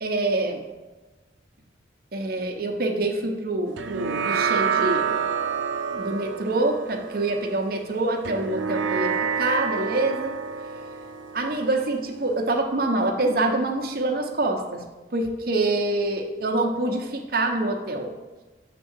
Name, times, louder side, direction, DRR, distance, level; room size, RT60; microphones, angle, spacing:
voice 1, 0.0-0.6 2.1-5.2 5.9-10.4 11.3-14.8 15.1-18.1, right 2 dB, 50° right, 3 dB, 0.8 m, -26 dB
sound 1, 3.8-12.5, right 6 dB, 90° right, 0.5 m, -28 dB
6.8 x 3.6 x 6.2 m, 1.2 s
head